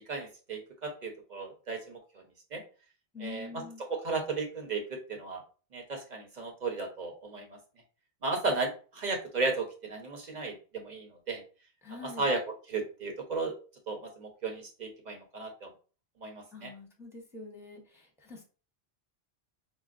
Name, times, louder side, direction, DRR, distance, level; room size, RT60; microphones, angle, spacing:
voice 1, 0.1-2.2 2.5-2.6 3.2-3.6 3.9-5.4 5.7-7.6 8.2-11.4 12.0-13.6 13.9-15.7 16.2-16.7, right 3 dB, 45° right, 2 dB, 0.9 m, -35 dB
voice 2, 3.1-3.8 11.8-12.3 16.5-18.4, left 4 dB, 5° right, 0 dB, 0.7 m, -45 dB
4.9 x 2.3 x 2.5 m, 0.36 s
omnidirectional pair, 1.1 m